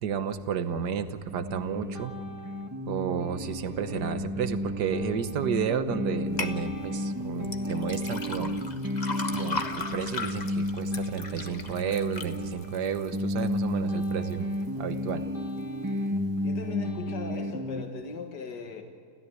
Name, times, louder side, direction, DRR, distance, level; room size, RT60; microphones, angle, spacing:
voice 1, 0.0-2.1 2.9-8.6 9.3-15.3, right 7 dB, 80° right, 9 dB, 1.7 m, -32 dB
sound 1, 1.3-17.8, left 1 dB, 10° right, 2.0 m, -32 dB
sound 2, 6.4-6.6 7.4-13.6 14.0-14.5 15.0-15.1, left 3 dB, 25° left, 1.3 m, -36 dB
voice 2, 16.4-18.8, left 5 dB, 85° left, 4 dB, 2.2 m, -37 dB
30.0 x 14.0 x 9.7 m, 2.3 s
omnidirectional pair, 1.8 m